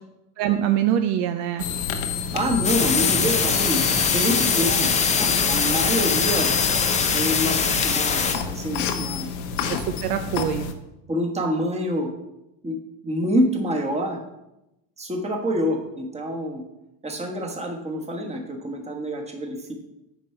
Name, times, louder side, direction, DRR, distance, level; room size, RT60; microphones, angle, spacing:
voice 1, 0.4-1.7 9.7-10.7, right 10 dB, 55° right, 8 dB, 0.7 m, -24 dB
sound 1, 1.6-10.7, left 7 dB, 70° left, 1.1 m, -29 dB
voice 2, 2.3-6.5 7.1-9.3 11.1-12.1 12.6-12.8 13.0-14.2 15.0-16.6 17.0-19.7, equal, 15° right, 2 dB, 1.3 m, -27 dB
sound 2, 2.6-8.4, left 5 dB, 15° left, 0.6 m, -22 dB
9.3 x 5.3 x 4.4 m, 0.90 s
supercardioid pair, 135°, 47 cm